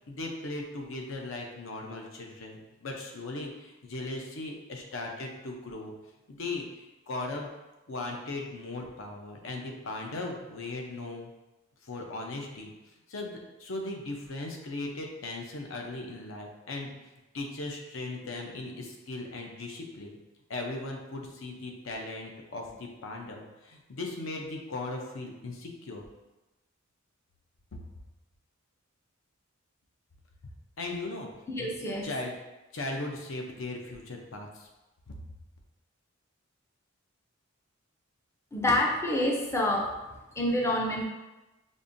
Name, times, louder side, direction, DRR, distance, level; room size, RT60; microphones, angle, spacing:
voice 1, 0.1-5.9 6.3-7.5 7.9-11.3 11.8-12.7 13.1-16.9 17.3-20.2 20.5-26.0 30.8-31.3 31.6-31.7 32.0-32.3 32.7-34.7, left 2 dB, 70° left, 1 dB, 0.6 m, -38 dB
voice 2, 31.5-32.0 38.5-39.9 40.4-41.0, left 1 dB, 15° left, -1 dB, 0.4 m, -27 dB
5.2 x 2.5 x 2.6 m, 1.0 s
head